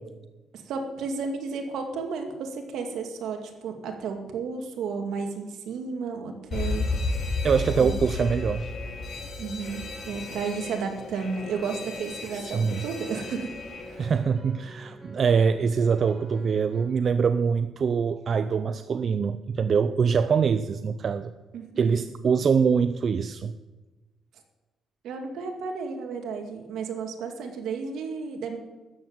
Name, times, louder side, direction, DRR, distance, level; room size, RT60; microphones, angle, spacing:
voice 1, 0.5-7.2 7.8-8.0 9.4-13.5 13.9-14.1 21.5-22.1 25.0-28.6, right 5 dB, 80° right, 4 dB, 2.3 m, -33 dB
Alarm, 6.5-14.2, left 3 dB, 55° left, 4.2 m, -33 dB
sound 1, 7.4-16.9, right 2 dB, 25° right, 3.9 m, -48 dB
voice 2, 7.4-8.7 12.3-12.9 14.0-21.3 21.8-23.5, right 6 dB, 50° right, 11 dB, 0.5 m, -24 dB
13.0 x 7.9 x 8.8 m, 1.2 s
cardioid pair, 90°, 0 cm